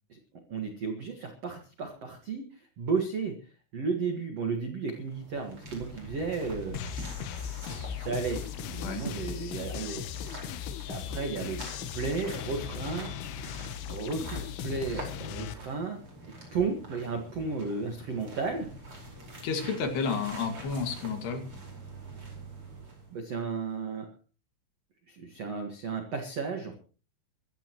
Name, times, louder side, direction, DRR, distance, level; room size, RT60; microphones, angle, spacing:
voice 1, 0.5-3.4 3.7-6.8 7.9-10.4 10.9-11.6 11.9-13.1 13.9-16.0 16.5-18.7 19.5-19.7 23.1-24.1 25.1-26.7, right 4 dB, 80° right, 4 dB, 1.4 m, -33 dB
sound 1, 4.9-23.2, right 2 dB, 25° right, 5.2 m, -46 dB
sound 2, 6.7-15.6, left 9 dB, 75° left, 3.5 m, -38 dB
voice 2, 19.4-21.4, left 5 dB, 60° left, 5 dB, 3.7 m, -31 dB
23.0 x 14.5 x 3.1 m, 0.37 s
omnidirectional pair, 5.9 m